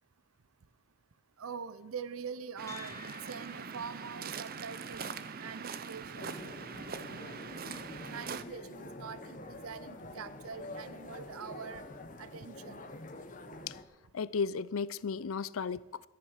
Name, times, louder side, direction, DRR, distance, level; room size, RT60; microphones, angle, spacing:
voice 1, 1.4-6.4 8.1-11.9 12.2-12.8, right 6 dB, 85° right, 0.6 m, -44 dB
Waves surf, 2.6-8.4, right 5 dB, 45° right, 0.7 m, -42 dB
sound 1, 2.7-11.3, left 4 dB, 15° left, 1.3 m, -57 dB
sound 2, 6.1-13.8, left 1 dB, 40° left, 1.1 m, -47 dB
voice 2, 14.1-16.1, left 5 dB, 80° left, 0.5 m, -34 dB
13.5 x 10.5 x 6.5 m
head